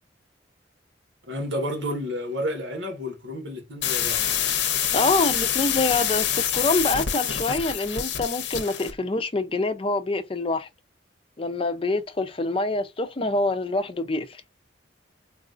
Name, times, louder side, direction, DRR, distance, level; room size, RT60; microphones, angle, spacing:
voice 1, 1.3-4.2, equal, 80° right, 1.3 m, -31 dB
sound 1, 3.8-8.9, left 9 dB, 70° left, 0.7 m, -26 dB
voice 2, 4.9-10.7 11.4-14.4, left 2 dB, 30° left, 0.5 m, -26 dB
4.0 x 2.4 x 2.5 m
head